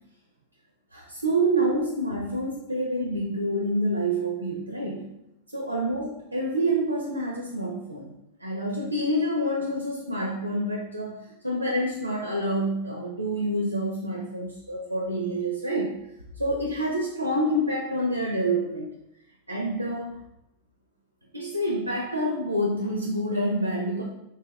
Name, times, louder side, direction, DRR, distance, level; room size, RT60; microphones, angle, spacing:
voice 1, 0.9-5.1 5.5-8.1 8.4-16.0 16.4-18.9 19.5-20.2 21.3-24.0, right 1 dB, 85° right, 0 dB, 0.4 m, -27 dB
3.1 x 2.7 x 2.2 m, 0.84 s
figure-of-eight pair, 90°, 0 cm